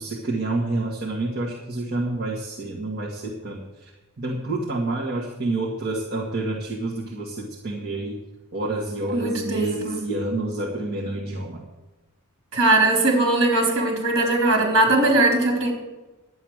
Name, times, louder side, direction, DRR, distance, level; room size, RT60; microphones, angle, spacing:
voice 1, 0.0-3.9 4.2-8.1 8.5-11.6, right 2 dB, 45° right, -4 dB, 2.0 m, -28 dB
voice 2, 9.1-10.0 12.5-15.8, right 2 dB, 65° right, 0 dB, 4.2 m, -20 dB
12.0 x 9.1 x 6.5 m, 1.1 s
head